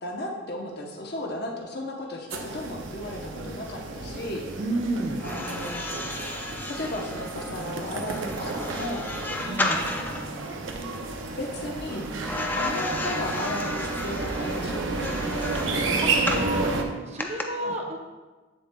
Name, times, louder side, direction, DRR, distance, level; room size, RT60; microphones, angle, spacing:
voice 1, 0.0-4.6 5.2-5.8 6.8-9.1 9.8-10.5 11.4-12.1 12.5-15.4 17.6-17.8, left 1 dB, 55° left, -1 dB, 0.8 m, -35 dB
sound 1, 2.3-16.8, right 3 dB, 75° right, 0.7 m, -31 dB
voice 2, 4.6-5.2 9.4-9.8 16.0-18.0, right 2 dB, 35° right, 1 dB, 0.6 m, -31 dB
sound 2, 5.1-10.3 12.2-16.5 17.2-17.4, left 2 dB, 10° left, 0.4 m, -33 dB
8.2 x 7.4 x 2.2 m, 1.3 s
head